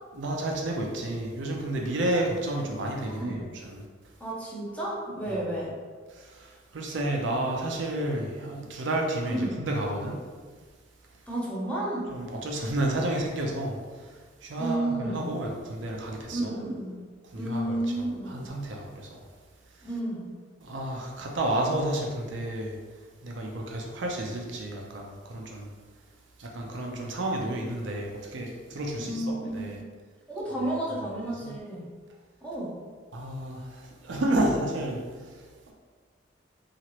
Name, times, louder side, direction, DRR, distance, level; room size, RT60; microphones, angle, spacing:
voice 1, 0.1-3.9 5.3-5.4 6.1-10.3 12.1-16.6 17.2-19.3 19.7-19.9 20.6-25.7 26.4-29.8 30.6-30.7 31.4-31.6 33.1-35.7, right 1 dB, 70° right, 0 dB, 0.5 m, -31 dB
voice 2, 3.1-3.4 4.2-5.7 9.3-9.6 11.3-12.1 14.6-15.3 16.3-17.0 17.3-18.3 19.8-20.3 29.0-29.7 30.3-31.9 32.4-32.7, right 1 dB, 5° left, -6 dB, 0.6 m, -31 dB
2.9 x 2.4 x 2.8 m, 1.5 s
head